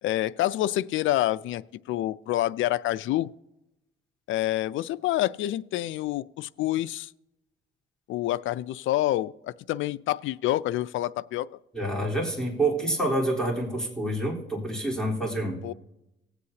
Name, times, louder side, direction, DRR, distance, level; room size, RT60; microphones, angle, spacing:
voice 1, 0.0-3.3 4.3-7.1 8.1-11.5 15.6-15.7, left 14 dB, 75° left, 0.4 m, -27 dB
voice 2, 11.7-15.6, right 1 dB, 5° left, 3.8 m, -27 dB
18.5 x 8.0 x 2.8 m
cardioid pair, 90°, 20 cm